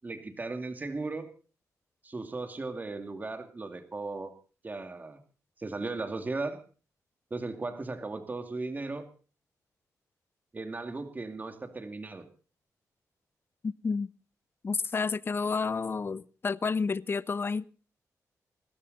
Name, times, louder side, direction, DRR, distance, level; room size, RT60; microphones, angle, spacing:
voice 1, 0.0-1.3 2.0-4.3 4.6-5.2 5.6-6.6 7.3-9.1 10.5-12.3, right 3 dB, 30° right, 7 dB, 2.4 m, -36 dB
voice 2, 13.6-14.1 14.6-17.7, left 4 dB, 35° left, 19 dB, 0.7 m, -30 dB
23.0 x 13.0 x 4.1 m, 0.37 s
cardioid pair, 100°, 6 cm